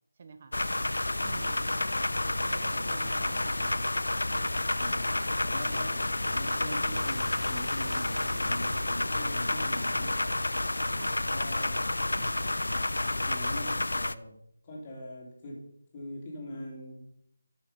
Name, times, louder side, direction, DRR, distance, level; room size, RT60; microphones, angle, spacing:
voice 1, 0.2-0.6 1.2-1.8 2.2-4.0 4.3-4.7 11.0-11.2 12.1-12.6, right 5 dB, 35° right, 9 dB, 0.9 m, -49 dB
sound 1, 0.5-14.1, left 2 dB, 70° left, 0.5 m, -30 dB
voice 2, 2.6-3.4 4.8-5.1 5.4-10.5 11.3-11.9 12.7-14.4 14.6-17.1, equal, 25° left, -2 dB, 3.2 m, -43 dB
sound 2, 5.6-10.1, right 1 dB, 60° right, 4.6 m, -48 dB
13.0 x 6.6 x 5.5 m, 0.74 s
figure-of-eight pair, 160°, 0 cm